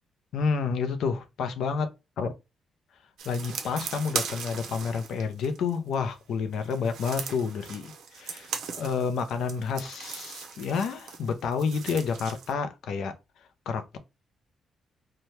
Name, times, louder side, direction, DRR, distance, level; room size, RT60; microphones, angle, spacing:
voice 1, 0.3-1.9 2.2-2.3 3.2-13.1 13.7-14.0, left 5 dB, 70° left, 0.5 m, -29 dB
sound 1, 3.2-5.9 6.5-12.5, right 6 dB, 80° right, 0.6 m, -38 dB
2.8 x 2.2 x 3.1 m
cardioid pair, 170°, 0 cm